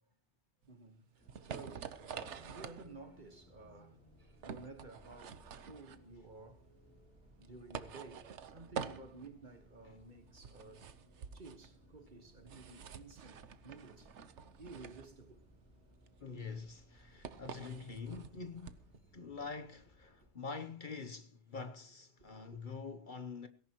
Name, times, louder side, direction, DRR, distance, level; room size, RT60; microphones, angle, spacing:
sound 1, 0.6-19.0, right 7 dB, 80° right, 1.2 m, -48 dB
voice 1, 0.7-6.6 7.4-10.8 11.3-14.1 14.6-15.4 22.2-22.6, right 3 dB, 45° right, 1.6 m, -54 dB
Bus, 1.2-20.3, equal, 10° left, 5.9 m, -64 dB
voice 2, 16.2-18.8 19.1-23.5, left 4 dB, 50° left, 1.0 m, -45 dB
18.0 x 17.0 x 3.0 m
omnidirectional pair, 1.2 m